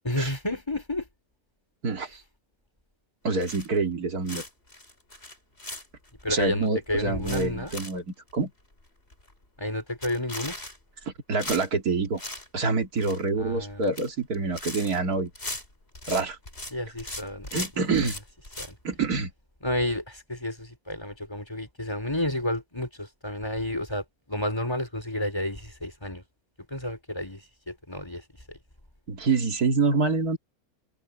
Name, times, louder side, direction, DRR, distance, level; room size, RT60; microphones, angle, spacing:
voice 1, 0.0-1.1 6.2-7.7 9.6-10.6 13.4-13.9 16.7-17.5 17.9-18.0 18.6-18.7 19.6-26.2 26.7-28.2 28.5-28.6, left 1 dB, 15° left, 4.0 m, -31 dB
voice 2, 1.8-2.2 3.2-4.4 6.3-8.5 11.1-12.2 12.5-15.3 16.1-16.4 17.5-18.2 18.8-19.3 29.1-30.4, right 4 dB, 80° right, 2.7 m, -26 dB
sound 1, 3.4-3.9 4.3-6.2 6.7-6.8 7.0-8.0 8.3-8.4 8.8-8.9 9.1-9.4 9.9-11.1 11.4-12.5 12.8-13.3 13.7-14.1 14.3-16.7 17.0-18.7, left 2 dB, 40° left, 5.9 m, -38 dB
omnidirectional pair, 1.6 m